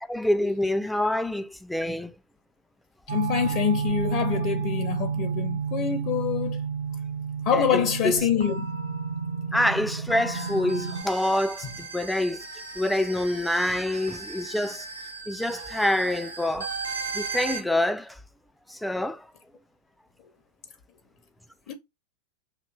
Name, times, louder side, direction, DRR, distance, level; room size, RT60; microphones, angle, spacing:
voice 1, 0.1-2.1 7.5-8.2 9.5-12.4 12.8-14.9 15.3-16.7 17.1-18.2 18.7-19.3, left 1 dB, 5° left, 0.4 m, -26 dB
voice 2, 3.1-6.6 7.5-8.7 11.6-11.8 21.7-21.8, left 8 dB, 45° left, 0.6 m, -26 dB
sound 1, 3.1-11.0, right 6 dB, 65° right, 0.8 m, -30 dB
sound 2, 10.3-17.6, right 4 dB, 90° right, 0.9 m, -37 dB
6.4 x 2.8 x 2.3 m
figure-of-eight pair, 90°, 0 cm